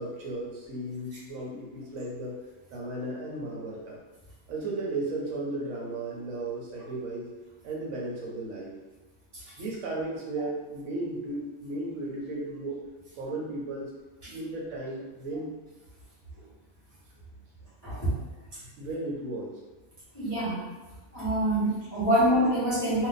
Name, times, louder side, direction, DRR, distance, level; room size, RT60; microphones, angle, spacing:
voice 1, 0.0-2.4 2.7-4.0 4.5-7.3 7.6-8.7 9.6-12.8 13.2-13.9 14.2-15.5 18.8-19.6, right 2 dB, 65° right, -3 dB, 1.2 m, -35 dB
voice 2, 20.1-20.6 21.1-23.1, right 1 dB, 20° left, -11 dB, 0.8 m, -25 dB
2.6 x 2.5 x 3.9 m, 1.2 s
omnidirectional pair, 1.5 m